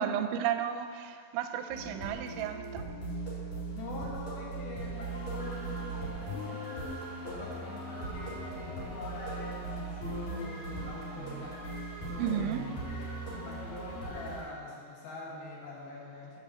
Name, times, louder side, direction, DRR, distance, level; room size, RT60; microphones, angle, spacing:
voice 1, 0.0-2.8 12.2-12.7, right 9 dB, 90° right, 3.0 m, -33 dB
sound 1, 1.7-14.4, right 2 dB, 40° left, 3.0 m, -39 dB
voice 2, 3.7-6.9 7.2-16.4, left 3 dB, 65° left, 2.7 m, -44 dB
7.6 x 5.4 x 7.5 m
omnidirectional pair, 5.3 m